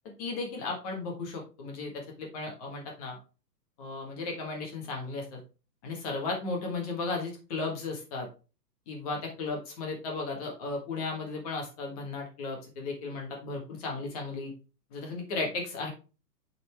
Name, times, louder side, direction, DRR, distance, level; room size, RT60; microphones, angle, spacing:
voice 1, 0.2-3.2 3.8-5.4 5.8-8.3 8.9-14.5 14.9-15.9, left 3 dB, 20° left, 0 dB, 1.6 m, -35 dB
7.8 x 4.4 x 3.5 m, 0.33 s
hypercardioid pair, 165°, 50 cm